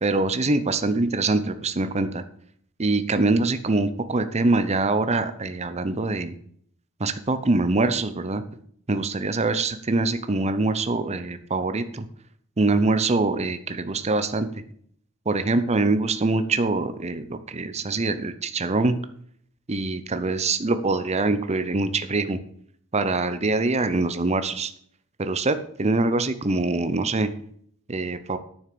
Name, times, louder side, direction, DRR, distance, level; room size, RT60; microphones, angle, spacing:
voice 1, 0.0-2.2 2.8-6.3 7.0-8.4 8.9-12.0 12.6-14.5 15.3-19.0 19.7-22.4 22.9-24.7 25.2-27.3 27.9-28.4, right 3 dB, 30° right, 10 dB, 0.8 m, -24 dB
9.3 x 7.2 x 6.8 m, 0.62 s
head